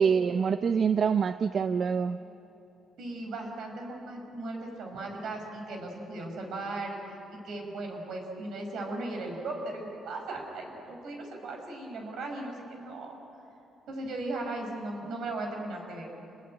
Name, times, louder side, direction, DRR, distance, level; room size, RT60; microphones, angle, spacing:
voice 1, 0.0-2.2, right 6 dB, 50° right, 10 dB, 0.7 m, -25 dB
voice 2, 3.0-7.0 7.3-13.2 13.9-16.1, right 2 dB, 75° right, 2 dB, 6.3 m, -37 dB
28.0 x 21.0 x 9.2 m, 3.0 s
cardioid pair, 90°, 0 cm